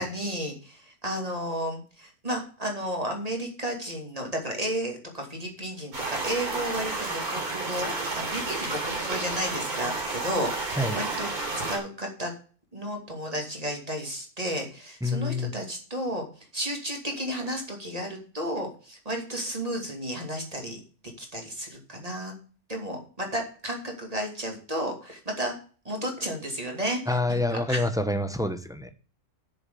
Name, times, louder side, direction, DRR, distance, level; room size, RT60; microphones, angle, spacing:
voice 1, 0.0-12.3 12.7-20.8 21.2-22.3 22.7-25.5 25.8-27.9, equal, 25° right, 2 dB, 2.6 m, -33 dB
sound 1, 5.9-11.8, right 3 dB, 70° right, 4.0 m, -31 dB
voice 2, 15.0-15.5 27.1-28.9, left 2 dB, 5° right, 9 dB, 0.6 m, -27 dB
8.1 x 6.9 x 6.9 m, 0.39 s
omnidirectional pair, 1.6 m